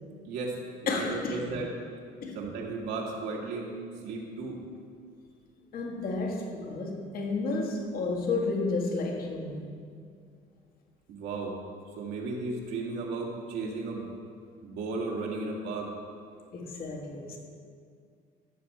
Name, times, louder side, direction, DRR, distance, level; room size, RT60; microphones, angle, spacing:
voice 1, 0.2-0.6 0.8-1.7 2.3-3.8 4.0-4.6 11.1-11.6 12.0-14.1 14.6-15.9, right 3 dB, 85° right, 2.1 m, -34 dB
voice 2, 0.9-1.4 2.2-2.4 5.7-9.8 16.5-17.4, left 3 dB, 60° left, 1.6 m, -31 dB
13.5 x 7.1 x 4.3 m
cardioid pair, 110°, 17 cm